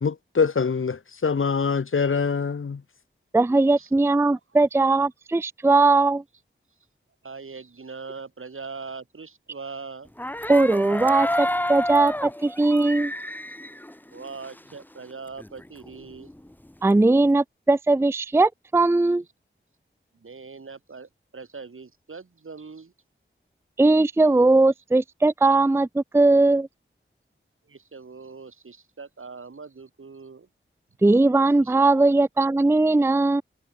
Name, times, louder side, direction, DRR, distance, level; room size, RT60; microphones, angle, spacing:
voice 1, 0.0-2.8, left 5 dB, 75° left, 1.5 m, -24 dB
voice 2, 3.3-6.2 10.5-13.1 16.8-19.2 23.8-26.7 31.0-33.4, right 2 dB, 10° right, 0.4 m, -19 dB
voice 3, 7.2-10.1 14.1-16.3 20.1-22.9 27.7-30.5 31.6-31.9, right 4 dB, 80° right, 7.7 m, -41 dB
sound 1, 10.2-14.8 15.1-15.2 15.4-17.3, left 1 dB, 10° left, 1.6 m, -30 dB
wide cardioid pair, 80°, 21 cm